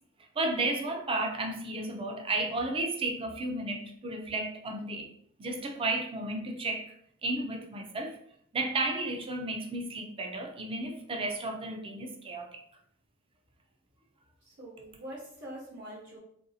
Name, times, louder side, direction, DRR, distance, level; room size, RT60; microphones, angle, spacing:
voice 1, 0.4-5.1 5.4-6.9 7.2-8.2 8.5-12.6, right 2 dB, 25° right, 0.4 m, -33 dB
voice 2, 14.4-16.2, right 1 dB, 50° right, 1.0 m, -44 dB
3.0 x 2.6 x 2.7 m
head